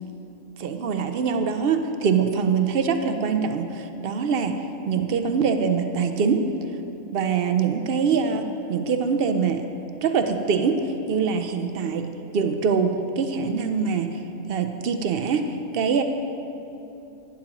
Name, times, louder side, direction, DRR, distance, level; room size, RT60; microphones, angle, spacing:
voice 1, 0.6-6.5 7.1-9.6 10.0-12.1 12.3-14.2 14.5-16.0, right 5 dB, 60° right, 7 dB, 0.7 m, -24 dB
11.5 x 10.0 x 2.9 m, 2.8 s
omnidirectional pair, 1.3 m